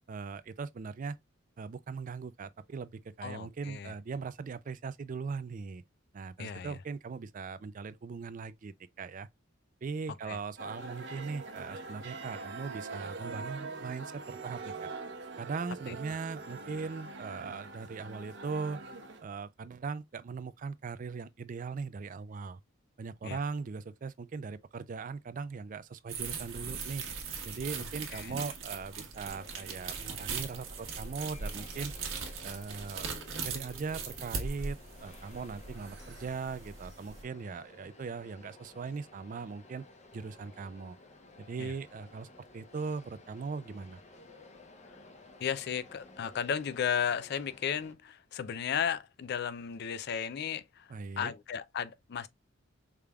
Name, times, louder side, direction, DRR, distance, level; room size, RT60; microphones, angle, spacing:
voice 1, 0.1-1.2 1.6-5.8 6.1-9.3 9.8-14.9 15.4-18.8 19.2-22.6 23.0-27.1 27.4-31.9 32.4-33.1 33.4-39.8 40.1-41.0 41.4-44.0 50.9-51.3, right 5 dB, 40° right, 0.3 m, -39 dB
voice 2, 3.2-3.9 6.4-6.8 10.3-10.4 15.9-16.0 23.2-23.4 28.1-28.3 41.6-41.7 45.4-52.3, left 8 dB, 55° left, 0.4 m, -34 dB
sound 1, 10.6-19.2, right 3 dB, 60° right, 0.8 m, -43 dB
sound 2, 26.1-37.2, right 5 dB, 75° right, 1.2 m, -40 dB
sound 3, 29.1-47.9, left 2 dB, 35° left, 0.8 m, -55 dB
5.0 x 3.4 x 2.3 m
head